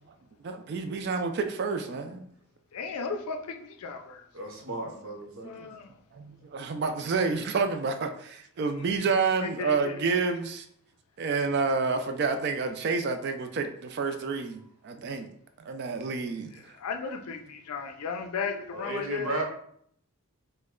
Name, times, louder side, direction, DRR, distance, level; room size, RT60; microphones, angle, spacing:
voice 1, 0.4-2.2 5.4-5.5 6.1-10.7 11.2-15.3 15.7-16.5, right 4 dB, 45° right, 0.3 m, -29 dB
voice 2, 2.7-4.2 5.4-5.9 9.6-10.0 11.3-11.4 16.8-19.4, left 5 dB, 85° left, 0.4 m, -35 dB
voice 3, 4.3-5.5 18.7-19.4, right 1 dB, 65° right, 0.7 m, -34 dB
3.0 x 2.1 x 3.6 m
head